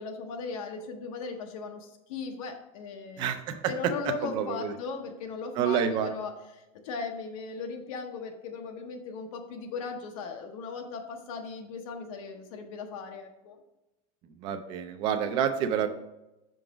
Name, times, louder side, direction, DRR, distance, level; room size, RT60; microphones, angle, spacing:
voice 1, 0.0-3.3 3.7-13.6 15.2-15.4, left 5 dB, 75° left, 3 dB, 0.7 m, -38 dB
voice 2, 3.2-3.9 4.2-4.7 5.6-6.1 14.4-15.9, right 8 dB, 25° right, 8 dB, 0.3 m, -28 dB
5.7 x 3.8 x 4.9 m, 0.95 s
supercardioid pair, 180°, 18 cm